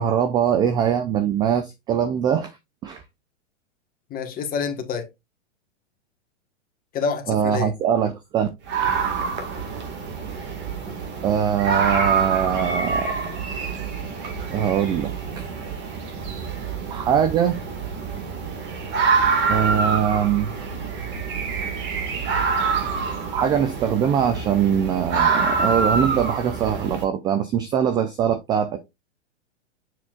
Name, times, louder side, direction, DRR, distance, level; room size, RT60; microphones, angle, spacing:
voice 1, 0.0-2.5 2.8-3.0 7.3-8.5 11.2-13.6 14.5-15.1 16.9-17.6 19.5-20.5 23.3-28.8, right 8 dB, 15° right, 0.3 m, -22 dB
voice 2, 4.1-5.1 6.9-7.7, left 5 dB, 25° left, 1.4 m, -27 dB
sound 1, 8.7-27.0, right 5 dB, 30° right, 1.9 m, -26 dB
7.2 x 5.9 x 2.4 m
hypercardioid pair, 125°, 36 cm